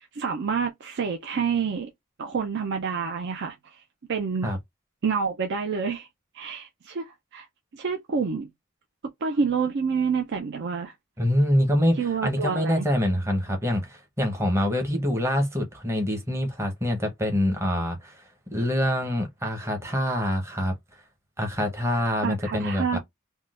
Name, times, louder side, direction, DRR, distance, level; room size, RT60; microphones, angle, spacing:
voice 1, 0.0-1.9 2.2-3.6 4.1-4.5 5.0-6.1 6.3-7.5 7.7-8.5 9.2-10.9 12.0-12.9 22.2-23.0, right 5 dB, 55° right, 0.5 m, -28 dB
voice 2, 11.2-18.2 18.5-20.8 21.4-23.0, equal, 15° right, 0.8 m, -25 dB
3.6 x 2.2 x 2.4 m
head